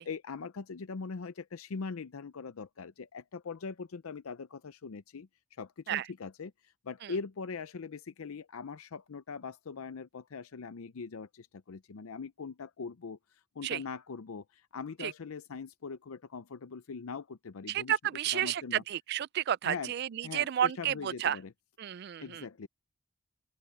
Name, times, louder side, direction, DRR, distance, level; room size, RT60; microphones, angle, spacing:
voice 1, 0.0-5.3 5.6-18.8 19.7-19.9 20.2-21.5 22.2-22.7, left 5 dB, 85° left, 0.6 m, -41 dB
voice 2, 17.7-21.4 21.8-22.4, right 10 dB, 50° right, 0.3 m, -31 dB
open air
head